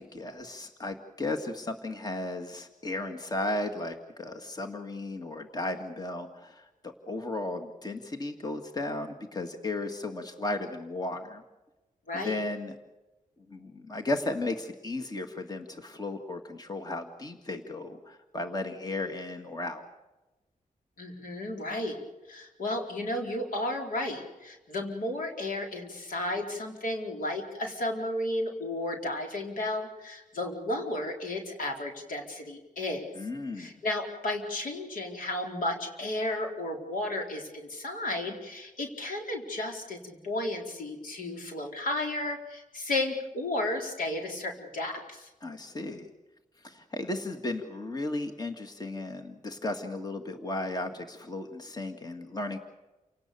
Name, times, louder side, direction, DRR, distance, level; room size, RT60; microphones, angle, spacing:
voice 1, 0.0-11.4 12.1-12.7 13.5-19.8 33.2-33.8 45.4-46.1 46.6-52.6, left 2 dB, 30° left, 6 dB, 2.0 m, -35 dB
voice 2, 12.1-12.4 21.0-22.0 22.3-33.1 33.6-45.3, left 1 dB, 85° left, 2 dB, 4.5 m, -33 dB
29.0 x 18.5 x 6.9 m, 1.1 s
wide cardioid pair, 125°, 14 cm